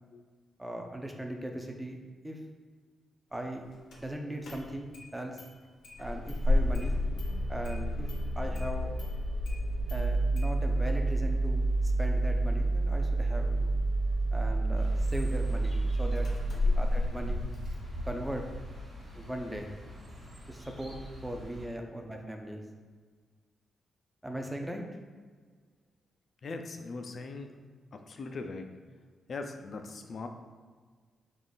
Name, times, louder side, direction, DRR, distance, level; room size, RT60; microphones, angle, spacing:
voice 1, 0.6-2.0 2.2-2.4 3.3-3.6 4.0-5.4 6.0-7.0 7.5-8.1 8.4-8.9 9.9-13.8 14.3-16.3 16.8-17.4 18.0-18.4 19.1-19.7 20.5-21.0 21.2-22.6 24.2-24.8, right 1 dB, 10° right, 3 dB, 0.5 m, -38 dB
Engine starting, 3.9-4.0 4.4-5.1 5.4-5.5 5.8-17.8, right 1 dB, 75° left, 0.9 m, -29 dB
sound 1, 14.8-21.7, equal, 45° right, 1.4 m, -43 dB
voice 2, 26.4-27.5 27.9-28.7 29.3-30.3, left 3 dB, 50° left, 5 dB, 0.4 m, -40 dB
3.6 x 2.4 x 4.0 m, 1.5 s
cardioid pair, 105°, 0 cm